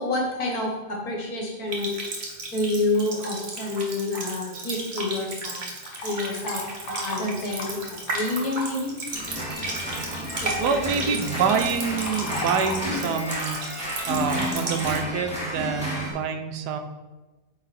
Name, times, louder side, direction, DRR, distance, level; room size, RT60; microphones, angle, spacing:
voice 1, 0.0-2.1 2.5-5.6 6.0-9.0 10.4-11.2, left 2 dB, 60° left, 0 dB, 1.8 m, -28 dB
Water tap faucet, 1.7-15.0, right 2 dB, 45° right, 1.3 m, -34 dB
Fill (with liquid), 5.8-12.8, left 3 dB, 80° left, 1.7 m, -38 dB
sound 1, 9.1-16.1, equal, 5° right, 2.0 m, -32 dB
voice 2, 10.6-13.6 14.1-16.8, right 6 dB, 80° right, 7 dB, 1.2 m, -26 dB
8.9 x 3.8 x 4.2 m, 1.2 s
omnidirectional pair, 1.8 m